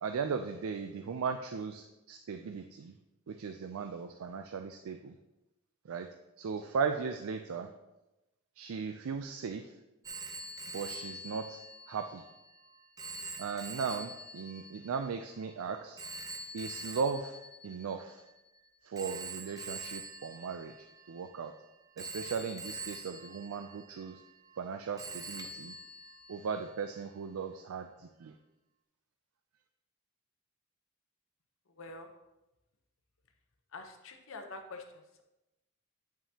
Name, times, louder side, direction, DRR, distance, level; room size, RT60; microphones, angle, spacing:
voice 1, 0.0-2.9 3.3-5.2 5.8-6.1 6.4-7.7 8.6-9.7 10.7-11.6 11.9-12.2 13.4-16.0 16.5-17.4 17.6-18.2 18.8-21.5 22.0-24.2 24.6-25.7 26.3-28.3, right 5 dB, 75° right, 6 dB, 0.4 m, -37 dB
Telephone, 10.0-18.4 19.0-21.5 22.0-24.7 25.0-26.7, right 2 dB, 15° right, 0.5 m, -45 dB
voice 2, 31.7-32.1 33.7-35.2, left 3 dB, 65° left, 5 dB, 0.8 m, -46 dB
8.9 x 5.6 x 2.8 m, 0.98 s
head